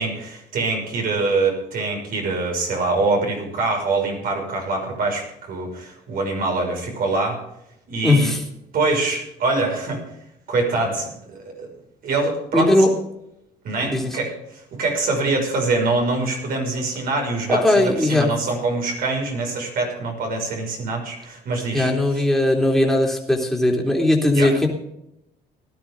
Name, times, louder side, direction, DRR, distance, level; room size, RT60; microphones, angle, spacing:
voice 1, 0.0-7.4 7.9-8.3 8.7-10.0 10.5-11.7 12.0-12.7 13.6-21.9 24.4-24.5, right 3 dB, 60° right, 1 dB, 6.0 m, -24 dB
voice 2, 8.0-8.4 12.5-12.9 13.8-14.2 17.5-18.3 21.7-24.7, left 1 dB, ahead, -1 dB, 3.5 m, -18 dB
18.0 x 12.0 x 3.8 m, 0.81 s
cardioid pair, 110°, 17 cm